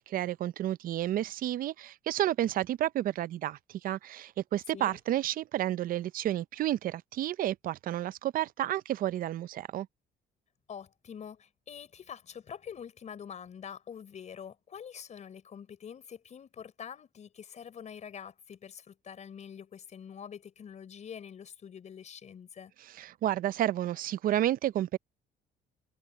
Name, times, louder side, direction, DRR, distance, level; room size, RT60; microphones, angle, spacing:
voice 1, 0.0-9.9 22.9-25.0, right 13 dB, 55° right, 0.5 m, -31 dB
voice 2, 10.7-22.7, left 7 dB, 45° left, 5.1 m, -45 dB
cardioid pair, 110°, 17 cm